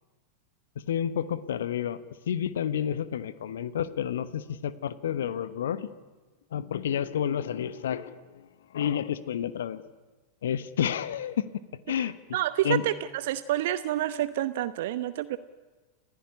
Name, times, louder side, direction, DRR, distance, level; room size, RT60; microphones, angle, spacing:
voice 1, 0.9-2.0 2.3-5.9 6.5-8.5 8.7-9.8 10.4-11.5 11.9-12.1 12.6-12.8, left 9 dB, 65° left, 14 dB, 1.2 m, -30 dB
voice 2, 12.3-15.4, right 13 dB, 55° right, 13 dB, 0.9 m, -28 dB
29.5 x 17.0 x 9.8 m, 1.3 s
figure-of-eight pair, 90°, 0 cm